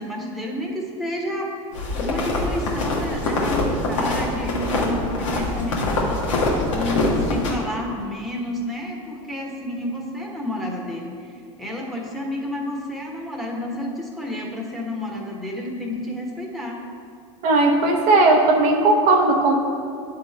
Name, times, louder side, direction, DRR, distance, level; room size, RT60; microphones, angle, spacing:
voice 1, 0.0-1.6 1.9-16.8, left 1 dB, ahead, -2 dB, 1.3 m, -30 dB
sound 1, 1.7-7.5, left 2 dB, 85° left, 1.5 m, -24 dB
voice 2, 17.4-19.6, right 2 dB, 55° right, 2 dB, 0.9 m, -17 dB
9.3 x 3.9 x 4.3 m, 2.3 s
hypercardioid pair, 95°, 16 cm